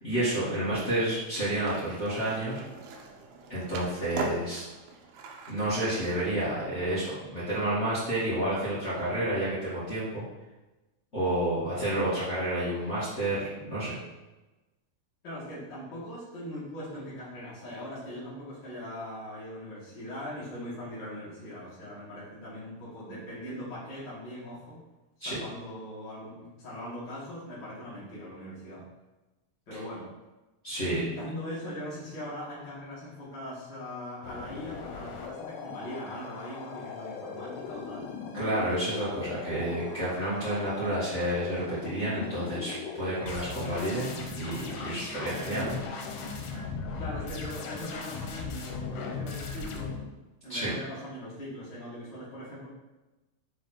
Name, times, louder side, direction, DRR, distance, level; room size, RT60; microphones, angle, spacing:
voice 1, 0.0-2.6 3.5-4.7 5.5-10.2 11.1-14.0 25.2-25.4 30.6-31.0 38.3-45.8 50.5-50.7, right 1 dB, 55° left, -12 dB, 0.7 m, -30 dB
voice 2, 0.6-1.0 15.2-24.8 25.2-28.8 29.7-30.1 30.8-38.1 45.5-45.7 47.0-49.9 50.4-52.7, left 1 dB, 35° left, -10 dB, 2.0 m, -40 dB
Skateboard, 1.6-6.9, right 3 dB, 80° right, 2.4 m, -41 dB
sound 1, 34.2-50.0, left 5 dB, 80° left, 2.8 m, -39 dB
6.1 x 4.6 x 4.4 m, 1.1 s
omnidirectional pair, 4.7 m